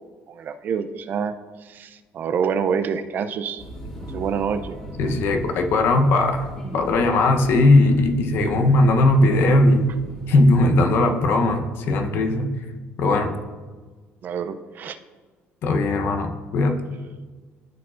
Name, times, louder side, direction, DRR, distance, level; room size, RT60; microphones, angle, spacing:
voice 1, 0.3-1.3 1.6-3.6 4.1-4.8 14.2-15.0, right 7 dB, 45° right, 10 dB, 0.4 m, -27 dB
sound 1, 3.6-10.8, right 1 dB, 15° left, 2.0 m, -38 dB
voice 2, 5.0-6.5 6.7-9.9 10.3-12.5 13.0-13.3 15.6-16.8, left 2 dB, 60° left, 5 dB, 0.8 m, -18 dB
13.5 x 4.7 x 2.5 m, 1.4 s
cardioid pair, 125°, 4 cm